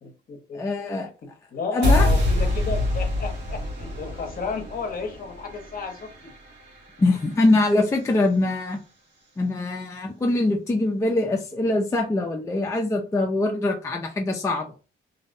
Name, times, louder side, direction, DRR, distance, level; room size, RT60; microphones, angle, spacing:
voice 1, 0.0-0.6 1.2-6.3, left 4 dB, 45° left, 5 dB, 0.7 m, -33 dB
voice 2, 0.5-1.1 1.7-2.1 7.0-8.8 9.4-14.7, left 2 dB, 15° left, 2 dB, 0.4 m, -23 dB
sound 1, 1.8-8.0, left 1 dB, 60° right, 1.1 m, -26 dB
2.6 x 2.0 x 2.5 m, 0.35 s
cardioid pair, 90°, 20 cm